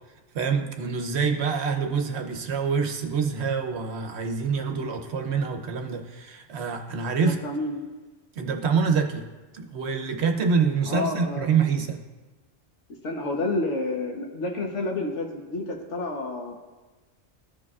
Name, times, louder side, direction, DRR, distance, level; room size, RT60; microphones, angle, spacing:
voice 1, 0.3-7.4 8.4-9.3 9.5-12.0, right 5 dB, 65° right, 4 dB, 1.0 m, -26 dB
voice 2, 7.2-7.8 10.9-11.6 13.0-16.6, left 2 dB, 75° left, 2 dB, 1.3 m, -30 dB
14.5 x 4.9 x 2.4 m, 1.2 s
omnidirectional pair, 1.3 m